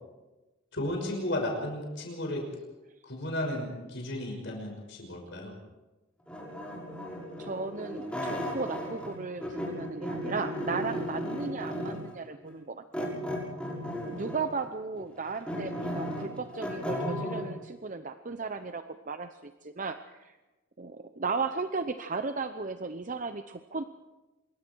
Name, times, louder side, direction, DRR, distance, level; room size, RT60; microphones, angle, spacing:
voice 1, 0.7-2.5 3.0-5.6, left 1 dB, 65° left, 1 dB, 5.8 m, -34 dB
sound 1, 6.3-9.1 9.4-12.1 12.9-14.5 15.0-17.5, equal, 5° left, 6.4 m, -35 dB
voice 2, 7.4-13.1 14.1-20.4 20.8-23.8, right 4 dB, 40° right, 9 dB, 0.8 m, -35 dB
26.5 x 23.5 x 4.7 m, 1.1 s
head